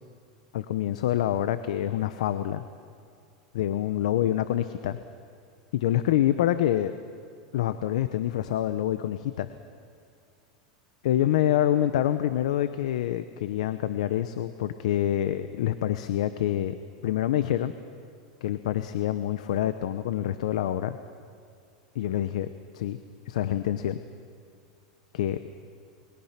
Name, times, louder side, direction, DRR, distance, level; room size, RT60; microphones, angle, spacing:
voice 1, 0.5-2.6 3.5-5.0 5.7-6.9 7.5-9.5 11.0-16.8 17.0-17.7 18.4-21.0 21.9-23.0 23.3-24.0 25.1-25.4, left 12 dB, 80° left, 11 dB, 0.9 m, -26 dB
28.5 x 22.0 x 6.0 m, 2.3 s
supercardioid pair, 145°, 4 cm